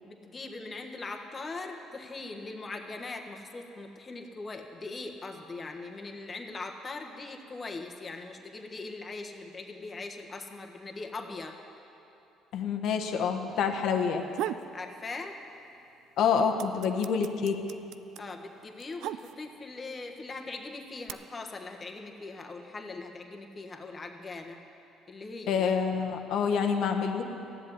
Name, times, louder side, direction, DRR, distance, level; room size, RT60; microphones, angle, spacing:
voice 1, 0.1-11.6 14.7-15.4 18.2-24.6 25.1-25.6, left 3 dB, 30° left, 3 dB, 1.5 m, -41 dB
voice 2, 12.5-14.2 16.2-17.6 25.5-27.2, left 6 dB, 70° left, 5 dB, 1.3 m, -27 dB
humpf tsk tsk, 14.1-14.7 15.1-15.8 16.1-19.7 20.5-21.1, right 12 dB, 75° right, 0.4 m, -37 dB
14.5 x 7.8 x 9.9 m, 2.8 s
supercardioid pair, 90°, 0 cm